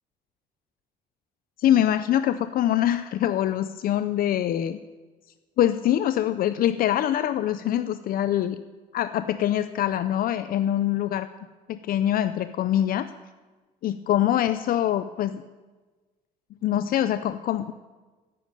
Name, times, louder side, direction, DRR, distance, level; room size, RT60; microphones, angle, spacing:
voice 1, 1.6-4.8 5.6-8.6 8.9-11.3 11.7-13.1 13.8-15.4 16.6-17.7, left 11 dB, 60° left, 12 dB, 0.5 m, -24 dB
10.0 x 9.1 x 9.0 m, 1.3 s
cardioid pair, 110°, 17 cm